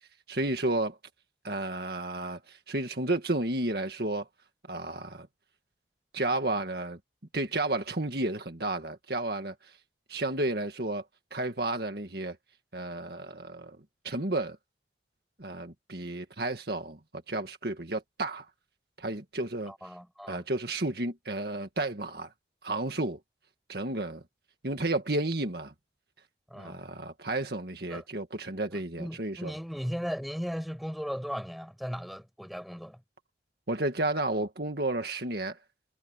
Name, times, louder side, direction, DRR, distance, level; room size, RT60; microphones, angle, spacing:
voice 1, 0.3-1.0 1.4-4.3 4.7-5.3 6.1-7.0 7.3-9.7 10.1-11.0 11.3-12.4 12.7-13.8 14.0-14.6 15.4-17.0 17.3-18.5 19.0-19.7 20.3-22.3 22.6-23.2 23.7-24.2 24.6-25.7 26.6-29.5 33.7-35.6, right 2 dB, 55° right, 1.9 m, -32 dB
voice 2, 19.7-20.4 26.5-26.8 27.9-28.0 28.7-33.0, equal, ahead, 7.2 m, -37 dB
head